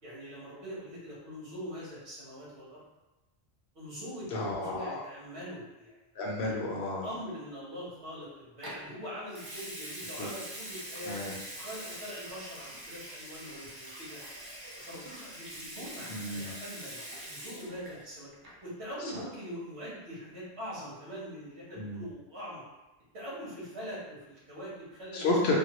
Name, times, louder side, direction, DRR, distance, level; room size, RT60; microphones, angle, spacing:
voice 1, 0.0-2.8 3.7-6.0 7.0-11.2 11.5-14.2 14.8-18.3 18.6-22.6 23.1-25.3, equal, 80° right, -7 dB, 1.4 m, -43 dB
voice 2, 4.3-5.0 6.1-7.1 10.2-10.3 11.0-11.3 16.1-16.5 21.8-22.0 25.1-25.5, left 2 dB, 75° left, -3 dB, 1.0 m, -31 dB
Water tap faucet / Sink (filling or washing) / Liquid, 8.6-8.9 9.3-18.1 18.3-18.7, right 1 dB, 30° right, 0.5 m, -44 dB
3.5 x 2.0 x 2.9 m, 1.1 s
omnidirectional pair, 1.1 m